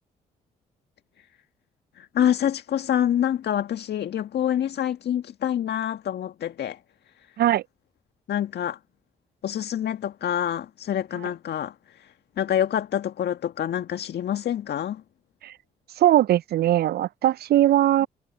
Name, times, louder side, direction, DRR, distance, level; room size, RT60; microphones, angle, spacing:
voice 1, 2.0-6.8 8.3-8.8 9.4-15.0, left 10 dB, 60° left, 1.7 m, -26 dB
voice 2, 16.0-18.1, right 13 dB, 55° right, 0.5 m, -20 dB
hypercardioid pair, 40°, 19 cm